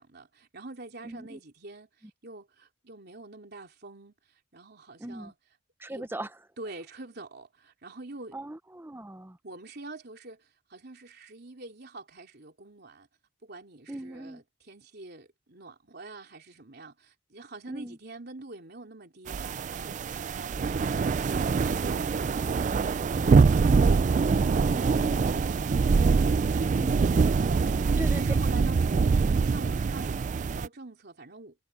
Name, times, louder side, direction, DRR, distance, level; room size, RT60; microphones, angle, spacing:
voice 1, 0.0-5.3 5.9-6.1 6.6-8.3 9.4-13.1 13.4-26.7 27.5-31.5, right 2 dB, 55° right, 3.4 m, -46 dB
voice 2, 1.0-1.4 2.0-2.1 5.0-5.3 5.8-6.4 8.3-9.4 13.9-14.4 17.7-18.0 28.0-28.4, right 1 dB, 10° right, 0.7 m, -39 dB
sound 1, 19.3-30.7, right 4 dB, 40° right, 0.3 m, -24 dB
head